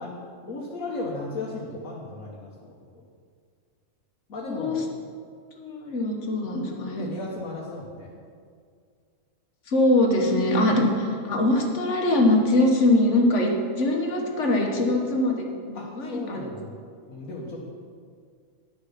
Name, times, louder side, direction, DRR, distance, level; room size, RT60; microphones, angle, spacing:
voice 1, 0.0-2.8 4.3-4.8 6.9-8.1 10.6-10.8 15.7-16.7 17.1-17.6, left 2 dB, 75° left, -4 dB, 1.6 m, -35 dB
voice 2, 4.4-4.8 5.5-7.1 9.7-16.5, left 1 dB, 60° left, 1 dB, 1.6 m, -23 dB
10.5 x 6.9 x 5.7 m, 2.1 s
omnidirectional pair, 1.4 m